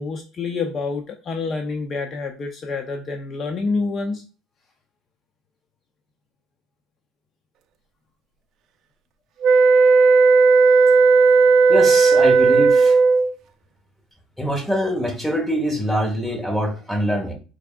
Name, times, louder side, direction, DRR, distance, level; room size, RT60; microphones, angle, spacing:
voice 1, 0.0-4.2, left 4 dB, 35° left, 3 dB, 0.5 m, -27 dB
sound 1, 9.4-13.3, right 4 dB, 55° right, 0.4 m, -14 dB
voice 2, 11.7-13.0 14.4-17.3, equal, 5° left, 3 dB, 1.1 m, -24 dB
4.7 x 3.4 x 2.3 m, 0.34 s
cardioid pair, 125°, 0 cm